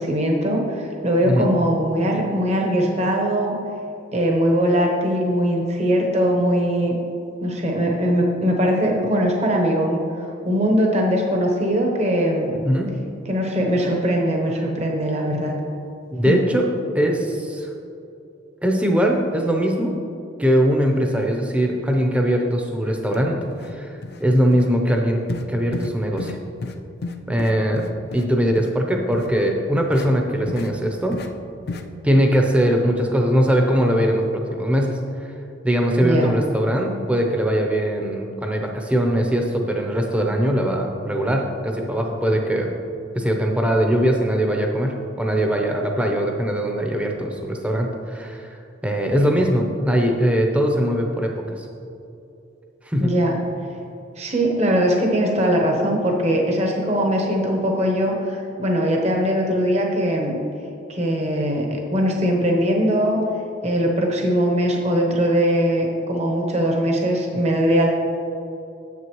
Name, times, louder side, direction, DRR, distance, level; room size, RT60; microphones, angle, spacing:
voice 1, 0.0-3.5 4.1-6.9 7.4-12.6 13.3-15.6 16.2-16.4 36.0-36.3 53.0-53.4 54.2-60.4 60.9-63.2 63.6-67.9, equal, 35° right, 0 dB, 0.9 m, -21 dB
voice 2, 16.1-16.7 16.9-17.7 18.6-19.9 20.4-23.4 23.7-25.2 25.5-26.4 27.3-27.9 28.1-31.2 32.0-34.2 34.5-35.3 35.6-42.7 43.1-48.5 48.8-51.7 52.8-53.1, equal, 5° right, 1 dB, 0.7 m, -21 dB
sound 1, 23.1-23.2 23.5-23.7 24.0-24.2 24.5-24.7 25.3-25.5 25.7-25.9 26.2-26.4 26.6-26.7 27.0-28.2 28.6-28.7 29.1-29.3 29.9-30.1 30.5-30.7 31.1-31.3 31.7-31.8, left 3 dB, 55° left, 0.5 m, -32 dB
9.5 x 7.9 x 3.1 m, 2.7 s
head